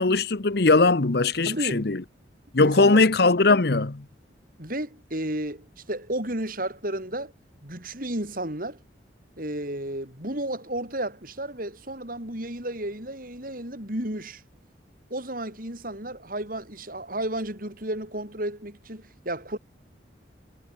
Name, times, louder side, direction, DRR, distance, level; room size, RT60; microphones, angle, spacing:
voice 1, 0.0-2.0 2.5-4.0, left 3 dB, 60° left, 1.0 m, -20 dB
voice 2, 1.5-1.9 2.6-3.0 4.6-7.3 7.6-8.8 9.4-14.4 15.1-19.6, right 1 dB, 50° right, 6.5 m, -32 dB
head